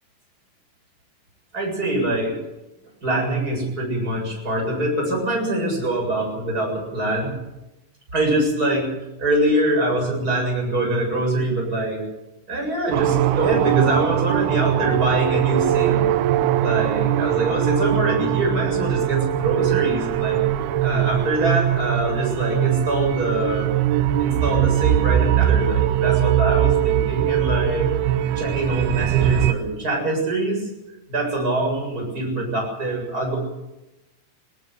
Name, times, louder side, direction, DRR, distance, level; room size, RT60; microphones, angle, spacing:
voice 1, 1.5-2.4 3.0-7.4 8.1-8.9 9.2-12.0 12.5-16.0 16.6-20.4 20.8-23.7 24.2-27.9 28.4-30.7 31.1-33.4, right 1 dB, 20° right, 0 dB, 8.0 m, -24 dB
sound 1, 12.9-29.5, right 11 dB, 80° right, 2.8 m, -21 dB
20.0 x 18.5 x 8.1 m, 0.98 s
omnidirectional pair, 4.5 m